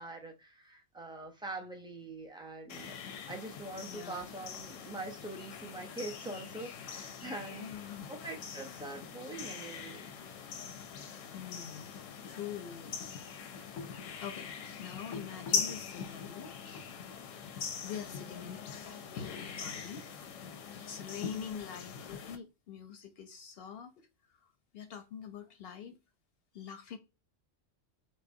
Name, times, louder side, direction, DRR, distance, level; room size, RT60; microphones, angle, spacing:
voice 1, 0.0-3.0 3.3-7.7 8.1-10.1 17.9-18.5 21.2-21.6, right 2 dB, 5° right, 0.3 m, -44 dB
sound 1, 2.7-22.4, left 6 dB, 90° left, 1.0 m, -42 dB
voice 2, 3.9-4.3 7.5-8.1 8.8-8.9 11.0-13.1 14.0-20.1 20.7-26.0 26.5-27.0, left 8 dB, 65° left, 0.7 m, -45 dB
4.6 x 2.1 x 2.6 m
omnidirectional pair, 1.3 m